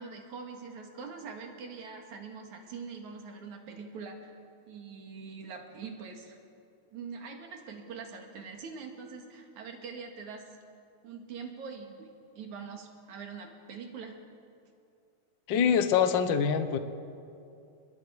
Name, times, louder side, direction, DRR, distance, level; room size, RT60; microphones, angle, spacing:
voice 1, 0.0-4.3 4.7-6.4 6.9-10.5 11.0-14.2, right 5 dB, 70° right, 3 dB, 3.3 m, -43 dB
voice 2, 15.5-16.8, left 7 dB, 65° left, 9 dB, 1.1 m, -24 dB
29.5 x 21.5 x 4.8 m, 2.5 s
omnidirectional pair, 3.6 m